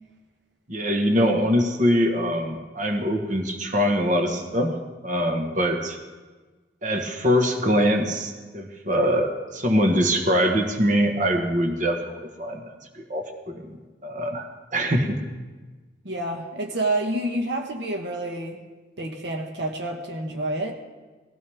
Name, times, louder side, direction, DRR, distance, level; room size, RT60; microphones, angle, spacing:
voice 1, 0.7-4.7 5.0-6.0 6.8-12.7 12.9-13.8 14.0-14.5 14.7-15.2, equal, 40° right, 4 dB, 1.4 m, -23 dB
voice 2, 16.0-18.6 19.0-20.7, right 1 dB, 60° right, 3 dB, 1.2 m, -28 dB
19.5 x 16.0 x 3.6 m, 1.3 s
head